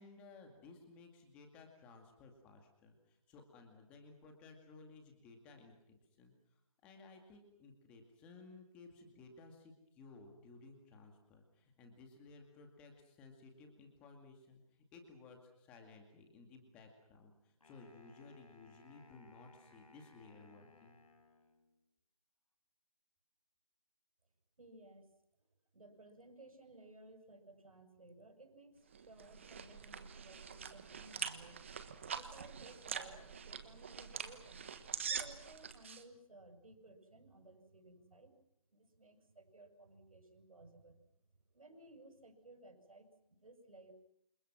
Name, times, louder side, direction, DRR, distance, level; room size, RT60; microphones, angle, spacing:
voice 1, 0.0-14.6 14.9-21.0, left 3 dB, 5° left, 4 dB, 2.2 m, -58 dB
Wind instrument woodwind instrument, 17.6-21.8, left 3 dB, 70° left, 6.9 m, -64 dB
voice 2, 24.6-25.1 25.4-25.5 25.7-31.6 32.1-34.7 35.1-38.3 38.7-41.0 41.5-43.9, right 2 dB, 70° right, 6 dB, 7.5 m, -58 dB
sound 1, 28.9-36.0, right 6 dB, 20° right, 1.3 m, -44 dB
29.5 x 27.5 x 6.2 m, 0.78 s
figure-of-eight pair, 175°, 19 cm